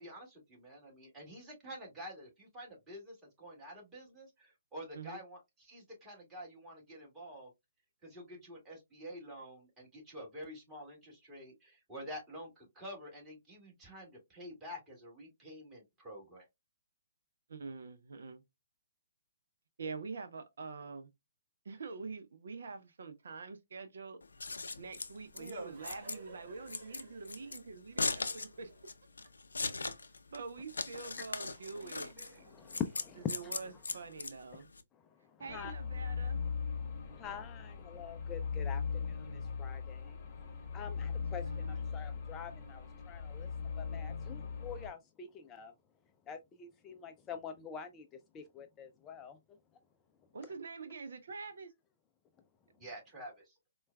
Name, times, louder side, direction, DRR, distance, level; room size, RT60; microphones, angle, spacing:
voice 1, 0.0-7.5 8.0-16.4 52.8-53.5, equal, 15° right, 1.8 m, -48 dB
voice 2, 17.5-18.4 19.8-21.1 21.6-24.2 24.8-28.7 29.8-29.9 30.3-32.4 33.2-34.7 35.4-36.4 41.2-41.8 50.3-51.7, right 4 dB, 65° right, 0.5 m, -45 dB
Scissors, 24.2-34.8, left 3 dB, 80° left, 0.5 m, -39 dB
sound 1, 24.7-28.9 30.8-30.9 31.5-33.9, right 2 dB, 45° right, 1.2 m, -53 dB
voice 3, 32.5-33.6 35.2-35.7 37.1-45.7 46.3-48.1 48.3-49.4, left 7 dB, 20° left, 0.4 m, -45 dB
sound 2, 35.5-44.9, left 5 dB, 40° left, 0.8 m, -39 dB
4.3 x 2.3 x 2.2 m
figure-of-eight pair, 135°, 0 cm